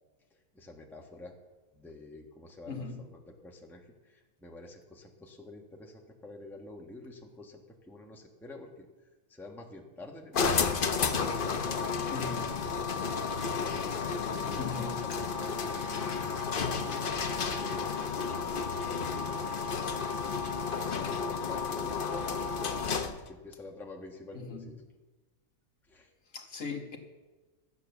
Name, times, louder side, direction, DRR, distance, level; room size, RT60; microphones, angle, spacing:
voice 1, 0.3-1.4 1.7-10.7 11.1-19.5 20.2-24.9 25.9-26.1, left 2 dB, ahead, 0 dB, 1.3 m, -49 dB
voice 2, 2.7-3.0 12.1-12.5 14.6-14.9 24.3-24.7 26.3-27.0, left 5 dB, 60° left, 3 dB, 1.8 m, -38 dB
sound 1, 10.3-23.3, left 5 dB, 45° left, 0.9 m, -32 dB
14.5 x 8.8 x 7.0 m, 1.2 s
omnidirectional pair, 1.5 m